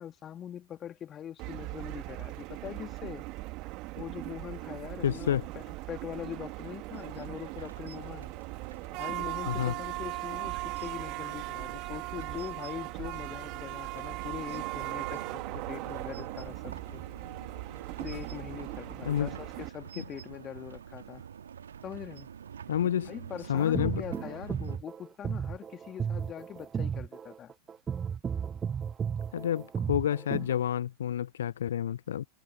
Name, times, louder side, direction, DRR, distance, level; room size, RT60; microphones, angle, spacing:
voice 1, 0.0-3.3 4.0-8.3 8.9-17.0 18.0-21.3 21.8-22.3 22.8-27.5, left 10 dB, 25° left, 2.0 m, -42 dB
sound 1, 1.4-19.7, right 22 dB, 40° right, 1.9 m, -39 dB
voice 2, 5.0-5.4 9.5-9.7 19.1-19.3 22.7-23.1 23.5-24.0 29.3-32.3, left 10 dB, 65° left, 0.6 m, -29 dB
sound 2, 6.9-24.8, right 8 dB, 65° right, 1.6 m, -47 dB
sound 3, 23.6-30.6, right 7 dB, 20° right, 0.6 m, -34 dB
figure-of-eight pair, 90°, 0 cm